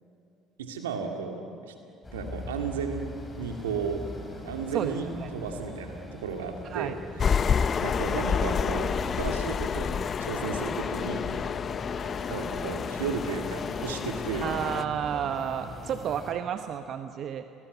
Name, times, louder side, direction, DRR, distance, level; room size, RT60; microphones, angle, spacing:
voice 1, 0.6-1.7 2.1-4.1 4.4-7.0 7.8-11.3 12.3-14.6, right 5 dB, 85° right, 4 dB, 2.5 m, -34 dB
sound 1, 2.0-16.3, left 1 dB, 25° left, 5.8 m, -42 dB
voice 2, 4.7-5.3 6.7-7.0 14.4-17.4, right 9 dB, 55° right, 8 dB, 1.1 m, -31 dB
sound 2, 7.2-14.8, left 6 dB, 40° left, 0.8 m, -29 dB
30.0 x 20.0 x 8.2 m, 2.6 s
hypercardioid pair, 60°, 0 cm